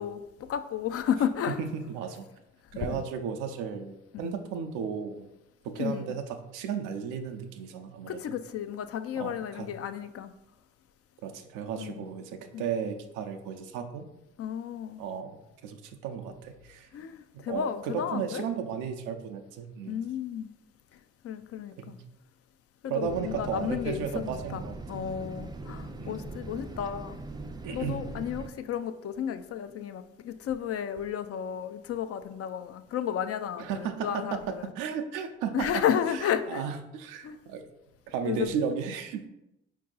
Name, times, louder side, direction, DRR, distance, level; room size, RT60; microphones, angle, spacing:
voice 1, 0.0-1.7 2.7-3.0 4.2-4.3 5.8-6.1 8.1-10.3 11.8-12.0 12.5-12.6 14.4-15.0 16.9-18.5 19.9-20.5 20.9-22.0 22.8-24.6 24.9-27.2 27.7-34.7 35.5-36.6 37.2-37.4 38.2-38.5, left 9 dB, 50° left, 0.4 m, -33 dB
voice 2, 1.5-2.3 2.7-5.3 5.6-8.1 9.1-9.8 11.2-14.1 15.0-16.9 17.3-20.0 21.8-22.0 22.8-24.8 26.0-26.3 27.6-28.0 33.6-35.8 36.5-37.7 38.1-39.3, right 7 dB, 90° right, 0.5 m, -34 dB
sound 1, 23.0-28.5, right 2 dB, 15° right, 0.4 m, -40 dB
4.5 x 2.7 x 3.8 m
supercardioid pair, 55°, 30 cm